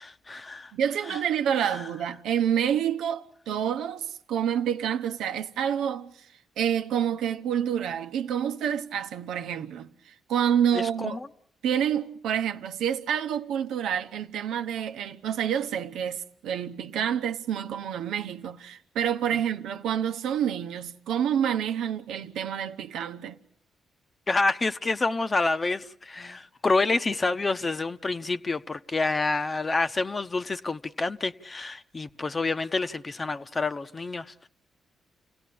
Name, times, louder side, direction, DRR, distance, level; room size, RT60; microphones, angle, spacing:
voice 1, 0.0-0.7 1.1-1.2 1.7-1.8 10.7-11.2 24.3-34.5, left 3 dB, 35° left, 1.0 m, -28 dB
voice 2, 0.7-6.3 6.6-11.2 11.6-23.4, right 9 dB, 80° right, 1.0 m, -28 dB
28.5 x 17.5 x 8.6 m
supercardioid pair, 55°, 0 cm